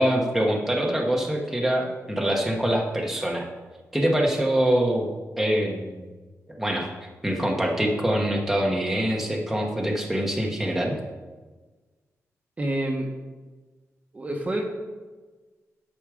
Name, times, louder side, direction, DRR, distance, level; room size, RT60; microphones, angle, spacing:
voice 1, 0.0-3.5 3.9-5.1 5.4-6.1 6.6-6.9 7.2-11.0, right 1 dB, 5° right, -1 dB, 1.2 m, -24 dB
voice 2, 12.6-13.1 14.1-14.6, right 1 dB, 25° right, 1 dB, 1.1 m, -27 dB
11.0 x 6.4 x 4.9 m, 1.3 s
wide cardioid pair, 170°, 5 cm